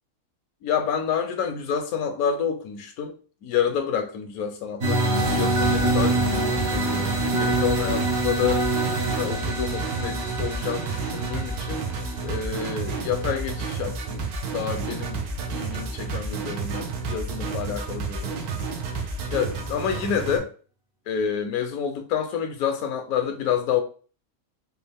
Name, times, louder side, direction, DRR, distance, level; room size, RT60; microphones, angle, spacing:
voice 1, 0.6-3.2 3.4-8.7 9.1-11.9 12.2-15.3 15.5-18.5 18.9-19.1 19.3-20.5 21.1-23.8, left 8 dB, 75° left, 1.1 m, -28 dB
sound 1, 4.8-13.6, right 2 dB, 60° right, 1.5 m, -26 dB
sound 2, 5.1-20.4, right 4 dB, 85° right, 1.2 m, -31 dB
3.9 x 2.4 x 3.4 m
omnidirectional pair, 1.6 m